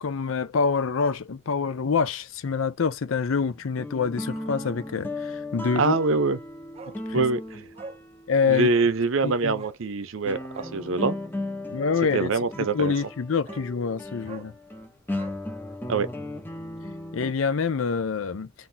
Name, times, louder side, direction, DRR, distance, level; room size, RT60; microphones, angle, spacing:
voice 1, 0.0-6.0 7.1-7.2 8.3-8.7 9.2-9.6 11.7-12.3 12.7-14.5 17.1-18.5, left 5 dB, 70° left, 0.5 m, -26 dB
sound 1, 3.5-8.8 9.4-9.5 10.3-17.3, left 1 dB, 10° left, 0.8 m, -36 dB
voice 2, 5.8-6.4 7.1-7.6 8.5-10.4 10.7-11.2 12.1-12.9 15.9-16.1, right 3 dB, 70° right, 0.6 m, -24 dB
Bark, 6.7-7.0 7.3-7.4 7.7-8.0 8.6-8.9 9.5-9.8 10.5-10.8 12.4-12.5 12.9-13.1 13.4-13.7 14.2-14.5 15.1-16.1 16.4-16.5, right 4 dB, 30° right, 0.4 m, -44 dB
3.9 x 2.6 x 2.7 m
head